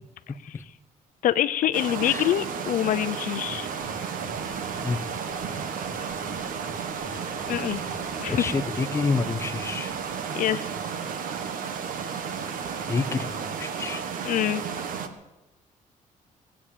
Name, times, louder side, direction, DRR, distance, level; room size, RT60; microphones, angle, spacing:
voice 1, 1.2-3.7 7.5-7.8 8.2-8.6 10.3-10.7 14.2-14.6, left 12 dB, 70° left, 13 dB, 0.7 m, -25 dB
sound 1, 1.7-15.1, right 6 dB, 75° right, 1.6 m, -33 dB
sound 2, 3.8-10.2, left 1 dB, 5° right, 2.3 m, -45 dB
voice 2, 8.3-9.9 12.8-14.0, left 4 dB, 20° left, 8 dB, 0.8 m, -28 dB
18.5 x 8.9 x 8.5 m, 1.0 s
cardioid pair, 165°, 14 cm